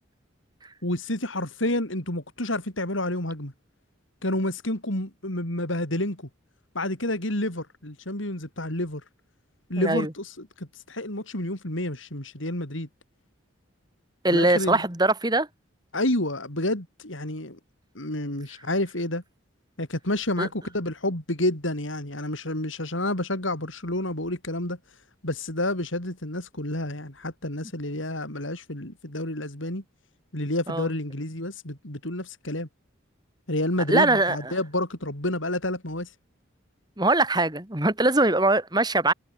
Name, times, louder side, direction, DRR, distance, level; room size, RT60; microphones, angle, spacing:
voice 1, 0.8-3.5 4.2-6.3 6.7-9.0 9.7-12.9 14.3-14.8 15.9-17.6 17.9-19.2 19.8-24.8 25.2-29.8 30.3-32.7 33.5-36.1, left 1 dB, 80° left, 6.0 m, -29 dB
voice 2, 9.8-10.1 14.2-15.5 20.4-20.5 30.7-30.9 33.9-34.5 37.0-39.1, right 2 dB, 20° right, 3.0 m, -22 dB
head